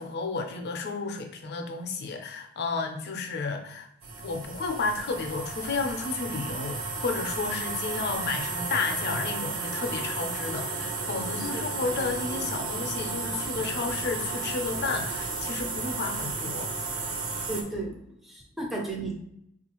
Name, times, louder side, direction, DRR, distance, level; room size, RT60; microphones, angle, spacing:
voice 1, 0.0-3.9 4.2-16.8, left 4 dB, 50° left, 4 dB, 0.5 m, -32 dB
sound 1, 4.0-17.6, right 3 dB, 65° right, 0.7 m, -33 dB
voice 2, 17.5-18.0 18.2-19.2, right 2 dB, ahead, -1 dB, 0.5 m, -34 dB
3.9 x 2.4 x 2.9 m, 0.74 s
head